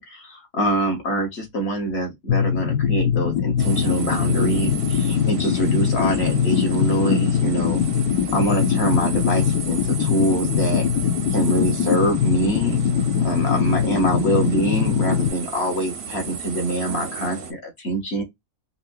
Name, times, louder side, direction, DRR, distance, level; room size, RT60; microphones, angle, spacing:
voice 1, 0.0-7.8 8.3-10.9 11.3-12.8 13.2-18.2, right 1 dB, 50° left, 1.5 m, -24 dB
sound 1, 2.3-15.3, left 8 dB, 75° left, 1.1 m, -22 dB
sound 2, 3.6-17.5, right 6 dB, 55° right, 0.7 m, -35 dB
3.9 x 2.9 x 2.2 m
omnidirectional pair, 1.5 m